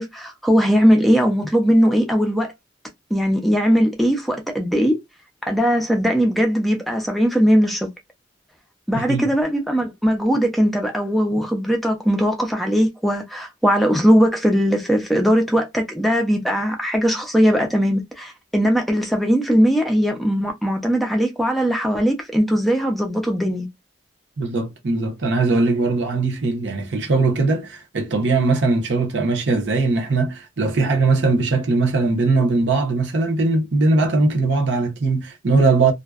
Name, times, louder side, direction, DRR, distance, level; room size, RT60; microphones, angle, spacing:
voice 1, 0.0-2.5 3.1-5.0 5.5-7.9 8.9-23.7, equal, ahead, 0.4 m, -19 dB
voice 2, 8.9-9.2 24.4-35.9, right 3 dB, 70° right, 0.8 m, -20 dB
2.5 x 2.1 x 2.3 m
head